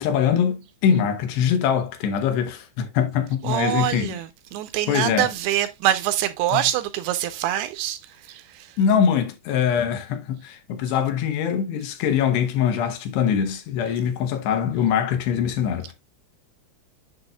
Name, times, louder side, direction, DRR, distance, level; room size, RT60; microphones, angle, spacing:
voice 1, 0.0-4.2 4.9-5.3 6.5-6.7 8.8-15.9, left 8 dB, 80° left, 3.1 m, -23 dB
voice 2, 3.4-4.3 4.5-8.0 8.3-8.7, right 12 dB, 80° right, 2.5 m, -24 dB
8.0 x 6.3 x 2.2 m
omnidirectional pair, 4.9 m